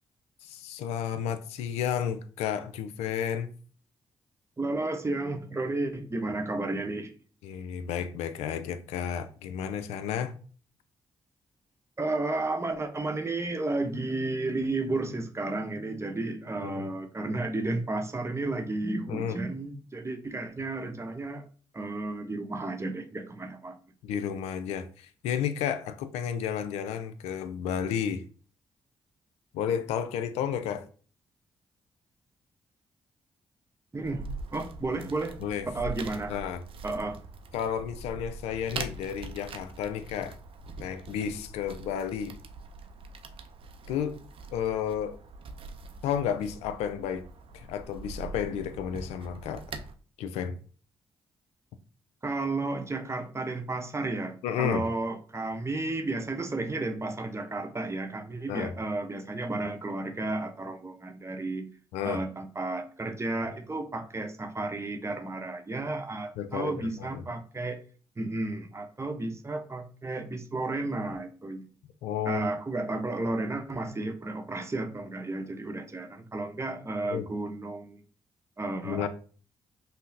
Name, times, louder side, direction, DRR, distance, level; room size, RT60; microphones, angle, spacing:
voice 1, 0.4-3.5 7.4-10.3 16.6-16.9 19.1-19.4 24.0-28.2 29.5-30.8 35.4-35.7 36.3-36.6 37.5-40.4 40.8-42.4 43.9-44.2 44.5-45.2 46.0-47.2 47.5-49.6 50.2-50.6 54.4-54.9 58.5-58.7 61.9-62.2 66.4-67.2 72.0-72.5 77.1-77.3 78.8-79.1, left 8 dB, 80° left, 0.4 m, -32 dB
voice 2, 4.6-7.1 12.0-21.5 21.7-23.8 33.9-34.3 34.5-35.4 35.7-36.4 36.8-37.2 52.2-61.7 62.0-67.8 68.2-71.7 72.3-78.0 78.6-79.1, right 2 dB, 25° right, 0.7 m, -32 dB
sound 1, 34.0-49.9, right 3 dB, 60° right, 0.5 m, -43 dB
5.4 x 2.0 x 2.6 m
hypercardioid pair, 45°, 11 cm